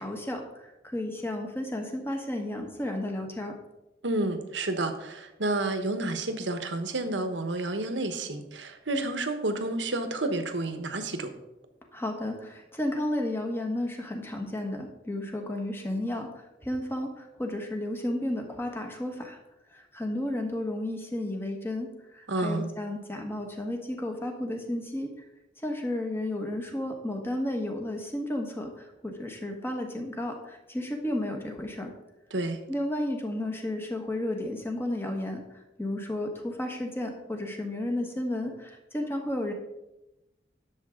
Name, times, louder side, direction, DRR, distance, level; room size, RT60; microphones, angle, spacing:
voice 1, 0.0-3.5 11.9-19.4 19.7-21.9 22.1-25.1 25.6-31.9 32.7-39.5, left 1 dB, 15° left, 3 dB, 1.4 m, -33 dB
voice 2, 4.0-11.3 22.3-22.7 32.3-32.6, right 2 dB, 85° right, 7 dB, 1.2 m, -30 dB
11.0 x 7.2 x 3.8 m, 0.95 s
head